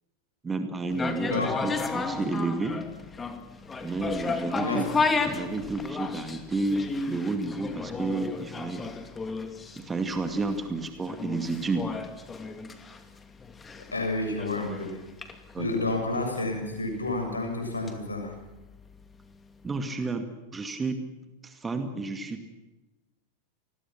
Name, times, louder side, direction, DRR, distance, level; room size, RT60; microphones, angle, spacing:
voice 1, 0.4-2.8 3.8-8.9 9.8-11.9 15.5-15.7 19.6-21.0 21.4-22.5, right 3 dB, 15° right, 7 dB, 2.3 m, -31 dB
sound 1, 0.9-19.0 19.3-19.4, left 4 dB, 15° left, 2.5 m, -34 dB
voice 2, 13.9-15.0 15.6-18.4, left 2 dB, 80° left, 4 dB, 7.4 m, -30 dB
28.5 x 21.0 x 6.0 m, 1.1 s
figure-of-eight pair, 90°, 0 cm